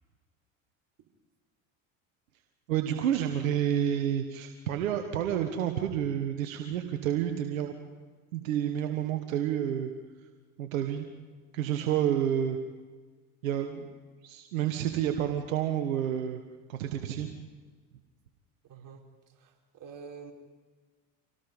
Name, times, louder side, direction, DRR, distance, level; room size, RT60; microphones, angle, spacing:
voice 1, 2.7-7.7 8.3-9.9 10.6-11.1 11.5-12.6 13.4-13.9 14.2-16.4 16.7-17.3, right 10 dB, 85° right, 6 dB, 1.6 m, -29 dB
voice 2, 18.7-20.3, right 5 dB, 50° right, 1 dB, 4.8 m, -48 dB
26.0 x 18.5 x 5.4 m, 1.4 s
hypercardioid pair, 75°, 39 cm